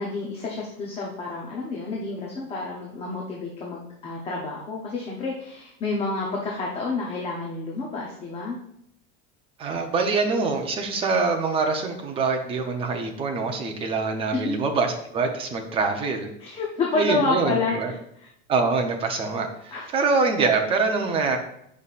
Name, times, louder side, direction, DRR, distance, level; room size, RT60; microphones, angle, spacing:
voice 1, 0.0-8.6 14.4-14.5 16.4-17.8 18.2-18.3 19.7-19.9, left 3 dB, 20° left, -3 dB, 0.7 m, -29 dB
voice 2, 9.6-16.3 16.9-17.9 18.5-21.4, right 4 dB, 20° right, 3 dB, 0.7 m, -24 dB
8.4 x 5.5 x 2.5 m, 0.74 s
cardioid pair, 175°, 30 cm